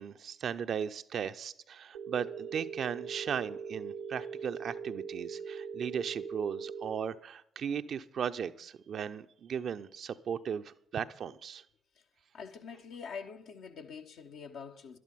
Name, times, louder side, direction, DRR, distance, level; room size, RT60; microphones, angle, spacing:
voice 1, 0.0-11.6, right 7 dB, 55° right, 0.6 m, -37 dB
Telephone, 1.9-6.9, right 6 dB, 75° right, 0.9 m, -41 dB
voice 2, 12.3-15.0, left 6 dB, 65° left, 1.1 m, -45 dB
12.0 x 11.5 x 5.5 m
figure-of-eight pair, 45°, 0 cm